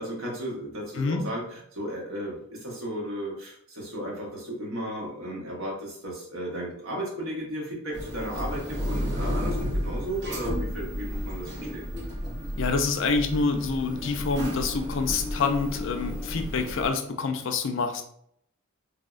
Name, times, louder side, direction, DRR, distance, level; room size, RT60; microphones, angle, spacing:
voice 1, 0.0-11.9, right 1 dB, 75° right, -2 dB, 1.0 m, -34 dB
sound 1, 7.9-16.9, equal, 55° right, 0.6 m, -32 dB
voice 2, 12.6-18.0, left 4 dB, 60° left, 6 dB, 0.4 m, -27 dB
3.3 x 2.0 x 2.3 m, 0.68 s
head